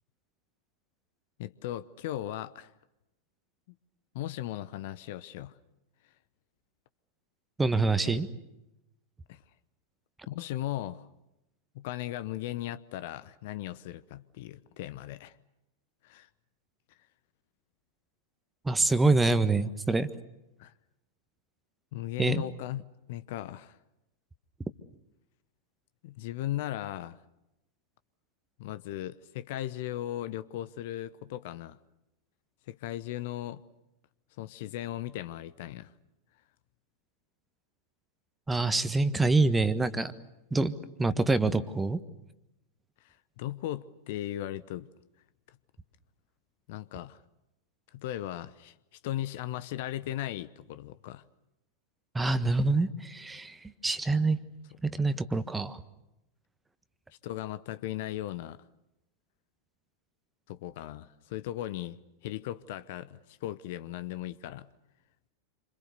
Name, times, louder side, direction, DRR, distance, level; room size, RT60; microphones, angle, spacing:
voice 1, 1.4-2.7 4.1-5.6 8.1-8.2 9.3-9.4 10.3-11.1 11.7-15.4 16.0-16.3 20.6-20.7 21.9-22.8 23.1-23.8 26.0-27.2 28.6-31.8 32.7-33.6 34.4-35.9 43.0-44.9 46.7-47.2 47.9-48.7 49.0-51.2 57.2-58.6 60.5-64.7, left 13 dB, 50° left, 0.9 m, -37 dB
voice 2, 7.6-8.3 18.6-20.1 22.2-22.4 38.5-40.1 40.5-40.7 41.0-42.0 52.1-53.6 53.8-54.4 54.8-55.8, right 3 dB, 10° right, 1.4 m, -25 dB
28.0 x 26.5 x 6.8 m
figure-of-eight pair, 90°, 0 cm